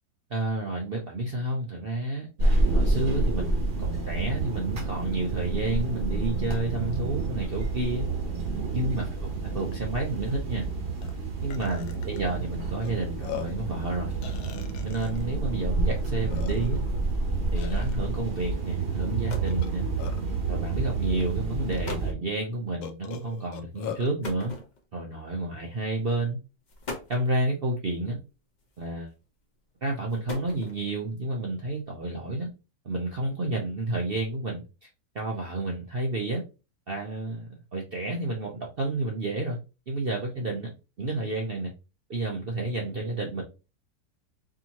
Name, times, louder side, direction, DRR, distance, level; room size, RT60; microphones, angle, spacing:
voice 1, 0.3-8.1 8.7-9.3 9.5-10.7 11.4-14.1 14.8-16.8 17.5-19.9 20.5-24.5 24.9-26.4 27.1-28.2 28.8-29.1 29.8-32.5 32.8-34.9 35.1-36.4 36.9-39.6 39.9-40.7 41.0-41.7 42.1-43.4, right 2 dB, 75° right, 0 dB, 0.5 m, -30 dB
sound 1, 2.4-22.1, right 3 dB, 40° right, 0.9 m, -29 dB
Burping eructation, 9.7-9.8 10.2-10.4 11.0-11.1 11.5-12.2 12.8-12.9 13.2-13.6 14.2-15.2 15.9-16.0 16.3-16.9 17.6-17.9 19.5-20.4 21.2-21.3 21.7-21.8 22.8-24.1, left 9 dB, 70° left, 1.0 m, -40 dB
sound 2, 19.0-19.7 20.7-20.9 21.5-21.6 21.8-22.2 24.2-25.1 26.0-26.2 26.7-27.3 28.6-29.1 29.9-31.0, left 2 dB, 45° left, 0.5 m, -40 dB
4.7 x 2.9 x 2.9 m, 0.30 s
omnidirectional pair, 2.0 m